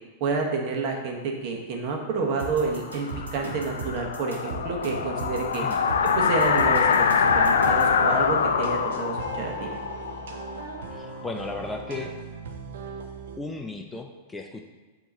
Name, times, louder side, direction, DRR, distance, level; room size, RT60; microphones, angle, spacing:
voice 1, 0.2-5.6 6.0-9.7, right 4 dB, 50° right, 1 dB, 1.2 m, -29 dB
sound 1, 2.4-8.0, right 3 dB, 90° right, 1.3 m, -37 dB
sound 2, 2.6-11.3, left 6 dB, 80° left, 0.3 m, -24 dB
sound 3, 7.6-13.4, right 5 dB, 70° right, 0.7 m, -39 dB
voice 2, 10.9-12.1 13.4-14.6, left 3 dB, 10° left, 3 dB, 0.5 m, -35 dB
7.7 x 3.0 x 4.2 m, 1.2 s
hypercardioid pair, 105°, 0 cm